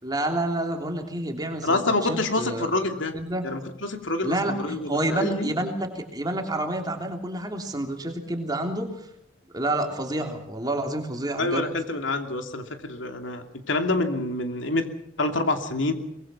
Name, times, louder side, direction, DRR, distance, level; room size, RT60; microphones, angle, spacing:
voice 1, 0.0-2.7 3.1-3.5 4.2-9.0 9.5-11.7, right 1 dB, 20° right, 3 dB, 3.2 m, -29 dB
voice 2, 1.6-3.2 3.4-5.5 11.4-14.9 15.2-15.9, left 2 dB, 75° left, 5 dB, 2.9 m, -27 dB
24.0 x 21.5 x 5.7 m, 0.74 s
head